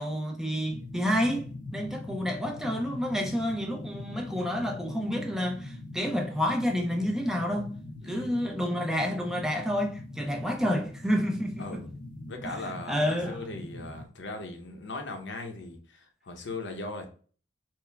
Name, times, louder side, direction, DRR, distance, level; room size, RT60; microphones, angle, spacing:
voice 1, 0.0-7.7 8.0-11.8 12.5-13.4, equal, 5° right, 0.6 m, -29 dB
sound 1, 0.7-14.1, left 2 dB, 50° left, 0.5 m, -42 dB
voice 2, 8.0-8.4 11.6-11.9 12.3-17.1, left 2 dB, 80° left, 0.8 m, -39 dB
4.5 x 2.1 x 3.3 m
head